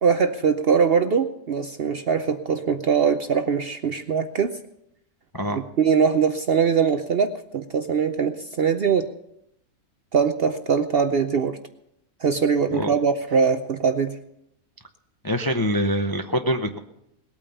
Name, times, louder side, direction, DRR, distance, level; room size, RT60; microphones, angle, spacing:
voice 1, 0.0-4.6 5.5-9.1 10.1-11.6 12.2-14.2, right 6 dB, 55° right, 8 dB, 0.7 m, -22 dB
voice 2, 15.2-16.8, equal, 25° left, 5 dB, 0.4 m, -24 dB
19.0 x 8.9 x 6.8 m, 0.79 s
omnidirectional pair, 1.6 m